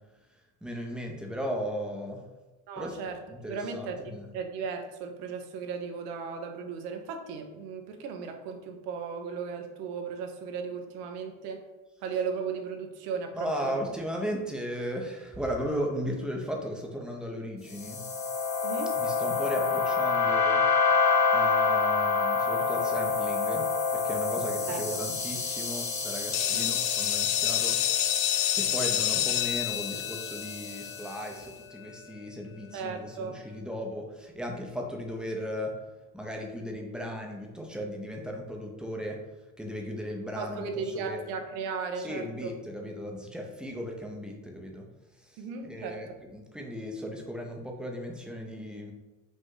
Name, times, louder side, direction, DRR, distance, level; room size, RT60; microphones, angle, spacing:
voice 1, 0.6-2.2 2.8-3.0 3.3-4.3 13.3-18.0 19.0-20.6 21.3-23.7 24.0-27.8 28.5-35.7 36.1-39.2 39.6-41.2 42.0-44.9 45.2-48.9, equal, ahead, 0 dB, 0.5 m, -36 dB
voice 2, 2.7-11.6 12.0-13.8 18.6-18.9 24.7-25.0 26.5-26.8 32.7-33.4 40.4-42.5 45.4-46.0, right 5 dB, 90° right, 4 dB, 0.9 m, -36 dB
sound 1, 17.7-31.1, left 4 dB, 35° left, 0.9 m, -28 dB
sound 2, 26.3-32.0, left 12 dB, 80° left, 0.5 m, -29 dB
5.3 x 2.5 x 3.7 m, 1.1 s
cardioid pair, 125°, 45 cm